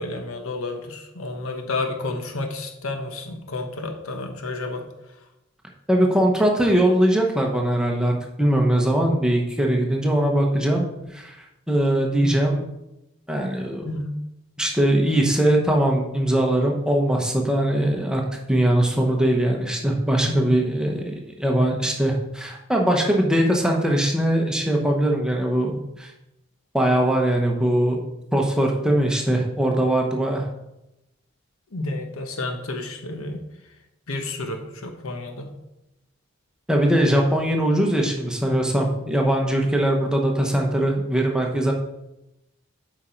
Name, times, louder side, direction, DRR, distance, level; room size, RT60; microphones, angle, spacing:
voice 1, 0.0-4.8 12.2-12.3 13.8-14.1 20.2-20.5 31.7-33.4 34.1-35.5, left 2 dB, 90° left, 4 dB, 1.1 m, -30 dB
voice 2, 5.9-8.1 8.4-10.8 11.1-11.4 11.7-12.6 13.3-13.8 14.6-18.2 18.5-26.1 26.7-28.0 28.3-30.5 36.7-41.7, right 1 dB, 5° right, 0 dB, 0.9 m, -21 dB
7.9 x 5.1 x 4.5 m, 0.91 s
head